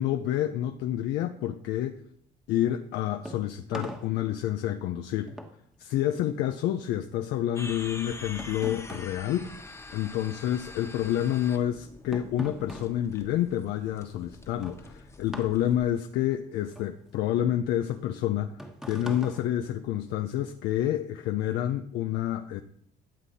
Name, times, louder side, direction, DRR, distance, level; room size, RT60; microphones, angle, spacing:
voice 1, 0.0-2.0 2.5-5.3 5.8-9.6 9.9-22.6, left 11 dB, 85° left, 7 dB, 0.7 m, -29 dB
sound 1, 2.8-10.4 10.7-20.4, equal, 5° right, 1.4 m, -44 dB
sound 2, 7.6-15.8, left 2 dB, 15° left, 1.3 m, -45 dB
13.5 x 7.6 x 4.2 m, 0.67 s
cardioid pair, 110°, 17 cm